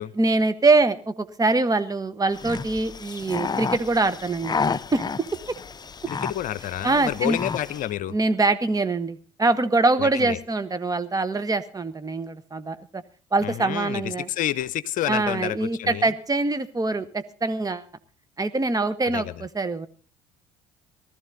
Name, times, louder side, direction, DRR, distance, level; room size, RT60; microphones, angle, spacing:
voice 1, 0.2-4.6 4.9-5.0 6.8-7.4 8.1-13.0 13.3-14.3 15.1-17.9 18.4-19.9, right 3 dB, 20° right, 13 dB, 1.5 m, -24 dB
sound 1, 2.3-7.9, left 5 dB, 25° left, 0.7 m, -31 dB
voice 2, 6.1-8.2 10.0-10.4 13.4-16.1 19.0-19.5, left 12 dB, 50° left, 17 dB, 0.8 m, -29 dB
19.0 x 13.5 x 4.1 m, 0.40 s
figure-of-eight pair, 55°, 17 cm